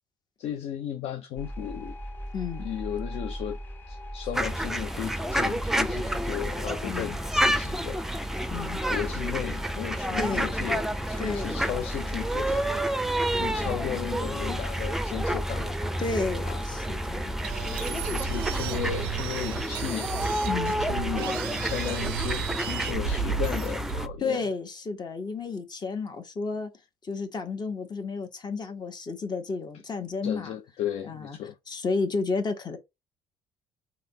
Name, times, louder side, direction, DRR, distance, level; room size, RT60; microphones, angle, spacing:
voice 1, 0.4-1.9 2.6-3.6 3.9-8.0 8.9-12.7 13.3-15.9 16.4-16.8 17.7-20.1 20.8-24.5 30.2-31.6, left 10 dB, 55° left, 0.5 m, -35 dB
sound 1, 1.4-18.6, equal, 15° left, 1.4 m, -38 dB
voice 2, 2.3-2.7 6.8-7.2 8.5-8.8 10.2-10.6 11.2-11.7 13.3-13.7 16.0-17.3 20.4-20.7 24.2-26.7 27.0-30.6 31.1-31.4 31.7-32.8, left 4 dB, 35° left, 1.3 m, -32 dB
sound 2, 4.3-24.1, right 1 dB, 5° right, 0.6 m, -30 dB
sound 3, 17.4-24.2, right 10 dB, 75° right, 0.4 m, -34 dB
3.2 x 2.9 x 4.0 m
figure-of-eight pair, 55°, 12 cm